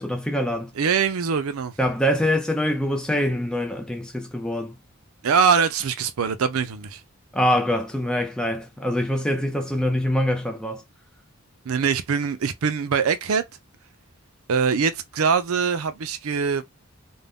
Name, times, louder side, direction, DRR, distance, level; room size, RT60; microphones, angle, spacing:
voice 1, 0.0-0.7 1.8-4.8 7.3-10.8, equal, 5° left, 0.3 m, -24 dB
voice 2, 0.8-1.7 5.2-7.0 11.7-13.4 14.5-16.6, right 6 dB, 75° right, 0.5 m, -23 dB
2.5 x 2.1 x 3.5 m
head